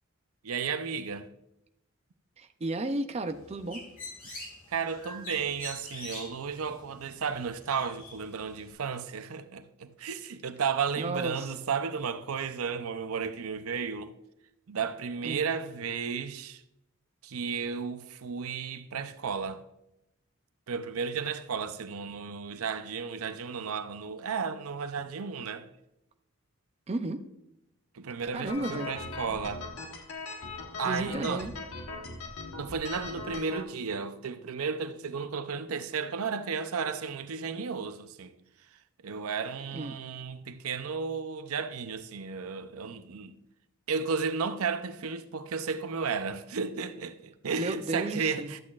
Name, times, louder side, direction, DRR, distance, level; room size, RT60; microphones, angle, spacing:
voice 1, 0.4-1.3 4.2-4.4 4.7-14.1 14.7-16.6 17.2-19.6 20.7-25.7 27.9-29.7 30.8-31.5 32.6-38.3 38.7-43.3 43.9-48.6, right 5 dB, 85° right, 0.6 m, -33 dB
voice 2, 2.4-3.8 11.0-11.5 15.2-15.5 26.9-27.2 28.3-28.9 30.8-31.5 39.7-40.0 47.6-48.5, right 2 dB, 30° right, 0.5 m, -33 dB
Bird, 3.3-8.7, left 1 dB, 40° left, 2.1 m, -45 dB
sound 1, 28.5-33.6, left 3 dB, 85° left, 1.3 m, -40 dB
12.0 x 8.4 x 2.4 m
head